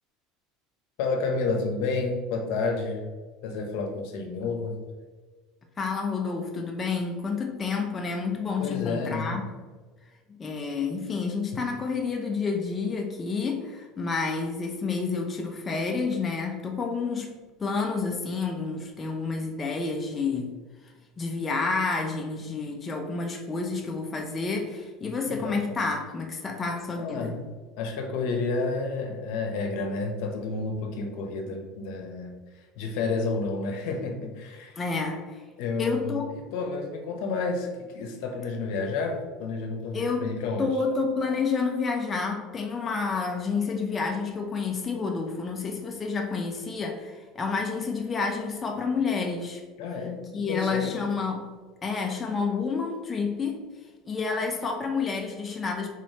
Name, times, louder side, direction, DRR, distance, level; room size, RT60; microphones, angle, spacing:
voice 1, 1.0-3.0 3.4-4.7 8.6-9.4 25.0-25.7 27.0-32.3 32.8-34.8 35.6-40.7 49.8-50.2 50.5-50.9, left 3 dB, 70° left, 3 dB, 0.7 m, -30 dB
voice 2, 5.8-9.5 10.3-27.4 34.8-35.4 35.8-36.3 39.9-40.3 40.6-49.6 50.3-51.5 51.8-53.6 54.1-55.9, left 4 dB, 20° left, 2 dB, 0.4 m, -29 dB
4.0 x 3.1 x 2.7 m, 1.4 s
supercardioid pair, 135°, 0 cm